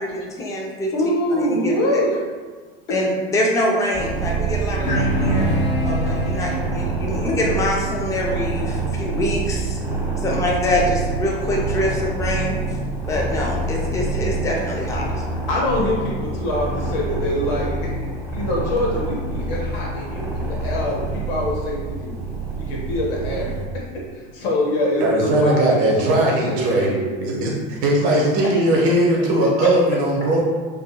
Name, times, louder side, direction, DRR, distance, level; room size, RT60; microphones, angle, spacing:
voice 1, 0.0-0.9 1.3-2.0 2.9-5.5 5.8-9.8 10.2-12.6 13.1-15.1, left 1 dB, 10° left, -2 dB, 0.4 m, -24 dB
voice 2, 0.9-2.1 4.9-5.0 15.5-17.9 18.3-22.2 22.6-27.1 28.5-28.6, left 1 dB, 70° left, -3 dB, 0.9 m, -24 dB
sound 1, 3.9-23.6, right 3 dB, 10° right, 1.0 m, -26 dB
sound 2, 4.8-9.6, equal, 35° left, 0.8 m, -26 dB
voice 3, 25.0-26.9 27.2-30.4, right 1 dB, 55° right, -2 dB, 0.8 m, -19 dB
2.6 x 2.5 x 2.2 m, 1.5 s
hypercardioid pair, 95°, 30 cm